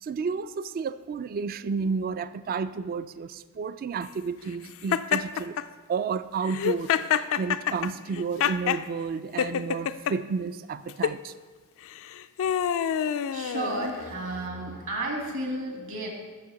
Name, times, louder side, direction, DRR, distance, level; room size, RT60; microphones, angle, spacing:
voice 1, 0.0-5.6 5.9-11.3, right 5 dB, 40° right, 15 dB, 0.3 m, -31 dB
Laughter, 4.9-5.6 6.5-8.8 9.4-10.1 10.9-11.2 11.9-14.1, left 8 dB, 65° left, 0.3 m, -27 dB
voice 2, 12.4-16.1, right 1 dB, 60° right, 1 dB, 2.1 m, -33 dB
6.5 x 6.2 x 7.1 m, 1.4 s
head